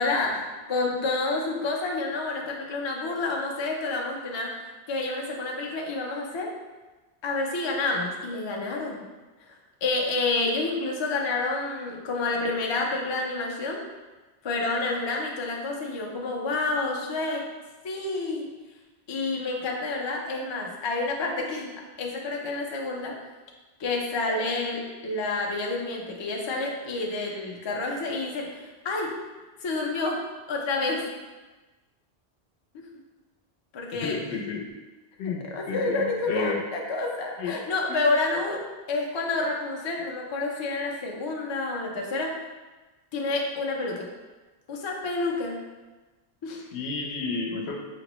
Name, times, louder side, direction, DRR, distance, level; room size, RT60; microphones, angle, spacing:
voice 1, 0.0-4.6 4.9-6.5 7.2-9.0 9.5-13.8 14.4-17.4 17.8-18.5 19.1-23.2 23.8-29.2 29.6-31.0 32.7-32.8 33.7-34.2 35.4-42.4 43.1-44.1 44.7-45.6 46.4-46.6, left 3 dB, 45° left, 0 dB, 0.3 m, -29 dB
voice 2, 33.9-34.7 35.2-36.6 37.4-37.6 37.9-38.0 46.7-47.8, left 4 dB, 80° left, 1 dB, 0.9 m, -31 dB
5.1 x 2.0 x 2.9 m, 1.2 s
omnidirectional pair, 1.1 m